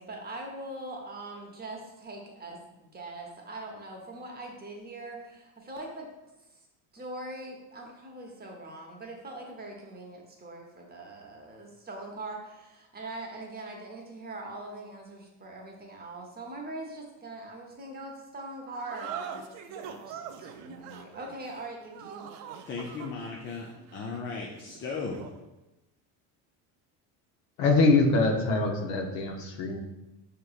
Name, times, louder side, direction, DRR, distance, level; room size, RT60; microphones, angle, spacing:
voice 1, 0.0-6.1 6.5-6.6 6.9-22.3, right 2 dB, 20° right, 0 dB, 0.7 m, -42 dB
sound 1, 18.7-25.5, right 7 dB, 80° right, 0.5 m, -43 dB
voice 2, 22.7-23.7 23.9-25.2, left 4 dB, 30° left, -2 dB, 0.4 m, -36 dB
voice 3, 27.6-29.8, left 3 dB, 75° left, 3 dB, 0.8 m, -24 dB
5.1 x 2.9 x 2.4 m, 0.98 s
cardioid pair, 115°, 43 cm